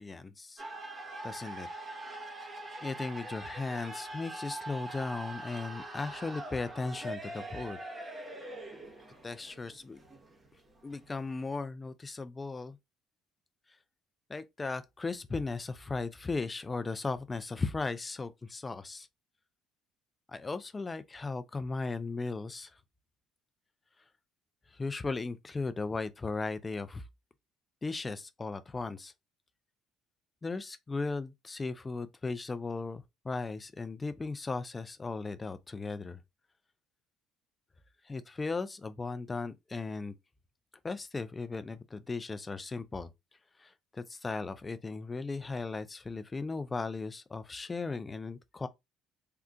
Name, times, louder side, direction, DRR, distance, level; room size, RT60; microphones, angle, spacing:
voice 1, 0.0-1.7 2.8-7.8 9.2-10.0 10.8-12.8 13.7-13.8 14.3-19.1 20.3-22.8 24.0-24.1 24.7-27.1 27.8-29.1 30.4-36.2 38.0-40.1 40.8-43.1 43.6-48.7, left 3 dB, 20° left, 0.3 m, -37 dB
sound 1, 0.6-11.5, right 1 dB, 25° right, 0.9 m, -43 dB
3.7 x 2.3 x 2.3 m
cardioid pair, 110°, 0 cm